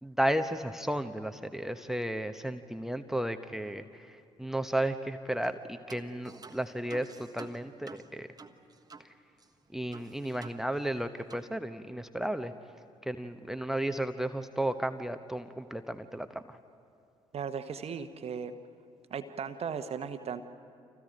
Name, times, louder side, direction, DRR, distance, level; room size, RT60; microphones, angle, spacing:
voice 1, 0.0-8.3 9.0-9.1 9.7-12.5 13.0-16.6, right 1 dB, 5° right, 11 dB, 0.9 m, -33 dB
sound 1, 5.4-5.6 5.9-9.1 9.4-9.5 9.9-11.0 11.3-11.5, right 4 dB, 25° right, 1.4 m, -50 dB
voice 2, 17.3-18.5 19.1-20.4, right 6 dB, 45° right, 9 dB, 1.1 m, -37 dB
29.5 x 27.5 x 5.2 m, 2.4 s
figure-of-eight pair, 45°, 15 cm